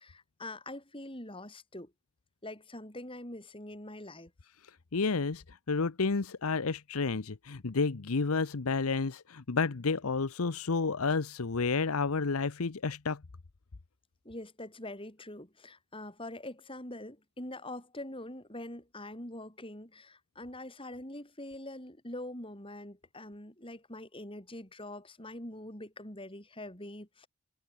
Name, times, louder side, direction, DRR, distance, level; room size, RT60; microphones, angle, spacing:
voice 1, 0.0-1.9 2.4-4.3 14.2-27.3, left 1 dB, 25° left, 5.6 m, -44 dB
voice 2, 4.9-13.2, left 4 dB, 75° left, 0.8 m, -30 dB
head